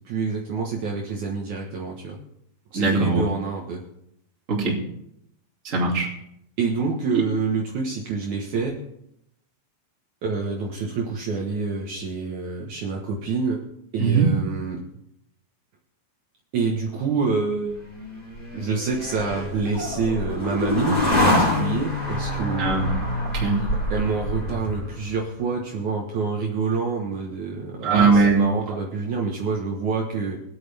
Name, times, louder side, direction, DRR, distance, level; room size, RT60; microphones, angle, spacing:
voice 1, 0.0-2.2 2.7-3.8 6.6-8.8 10.2-13.6 13.9-14.8 16.5-17.8 18.5-22.8 23.9-30.4, right 4 dB, 85° right, -2 dB, 1.6 m, -27 dB
voice 2, 2.7-3.2 4.5-4.8 5.6-6.1 14.0-14.3 22.6-22.9 23.3-23.7 27.8-28.4, right 4 dB, 25° right, -2 dB, 1.7 m, -20 dB
sound 1, 17.8-25.2, left 1 dB, 15° left, 2.2 m, -26 dB
23.5 x 8.7 x 3.5 m, 0.77 s
omnidirectional pair, 5.5 m